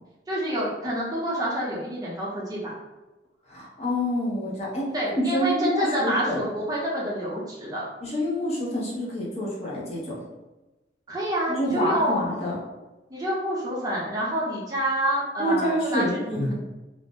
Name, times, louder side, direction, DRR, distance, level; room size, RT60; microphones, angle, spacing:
voice 1, 0.3-2.8 4.9-7.9 11.1-12.2 13.1-16.0, right 1 dB, 20° right, -5 dB, 0.6 m, -27 dB
voice 2, 3.5-6.4 8.0-10.0 11.6-12.6 15.4-16.5, left 1 dB, 35° left, -4 dB, 0.7 m, -27 dB
2.5 x 2.0 x 3.5 m, 1.1 s
head